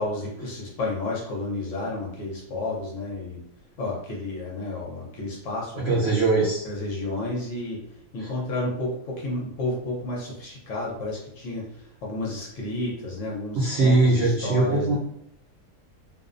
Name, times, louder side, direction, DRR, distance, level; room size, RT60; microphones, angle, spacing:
voice 1, 0.0-3.4 3.8-6.0 6.6-7.8 8.1-15.0, left 2 dB, 60° left, -3 dB, 0.9 m, -31 dB
voice 2, 5.8-6.6 8.2-8.3 13.5-15.0, right 3 dB, 85° right, -4 dB, 0.5 m, -21 dB
2.6 x 2.0 x 2.4 m, 0.76 s
omnidirectional pair, 1.7 m